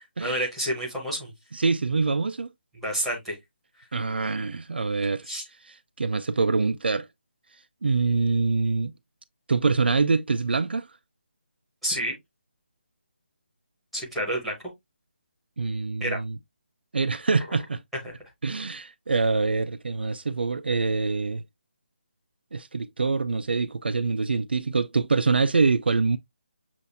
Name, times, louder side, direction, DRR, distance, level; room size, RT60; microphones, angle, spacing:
voice 1, 0.2-1.3 2.8-3.4 5.3-5.4 11.8-12.1 13.9-14.5 16.0-16.2 18.0-18.1, equal, ahead, 1.0 m, -29 dB
voice 2, 1.5-2.5 3.9-5.3 5.7-7.1 7.8-8.9 9.5-10.9 15.6-16.4 16.9-17.8 18.4-21.4 22.5-26.2, right 4 dB, 65° right, 0.4 m, -25 dB
7.0 x 2.5 x 2.6 m
hypercardioid pair, 180°, 6 cm